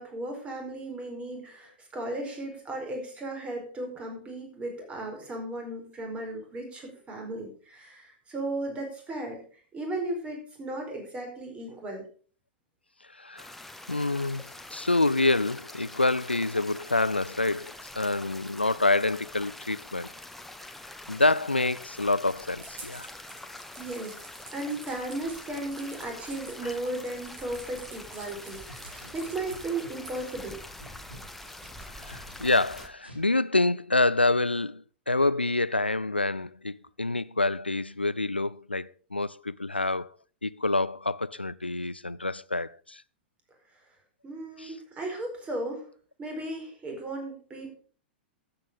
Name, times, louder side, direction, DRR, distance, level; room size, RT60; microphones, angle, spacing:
voice 1, 0.0-12.0 23.8-24.2 24.5-30.6 44.2-45.9 46.2-47.7, right 2 dB, 20° right, 4.6 m, -36 dB
voice 2, 13.2-13.5 13.9-14.4 14.7-20.1 21.1-23.1 26.6-26.7 31.9-40.1 40.4-43.0 44.6-44.7, left 2 dB, 85° left, 0.4 m, -27 dB
sound 1, 13.4-32.9, left 1 dB, 5° left, 1.2 m, -45 dB
sound 2, 22.6-30.1, right 3 dB, 40° right, 5.9 m, -49 dB
sound 3, 28.5-30.5 30.8-33.2, equal, 90° right, 3.9 m, -49 dB
13.5 x 8.4 x 5.2 m
figure-of-eight pair, 95°, 6 cm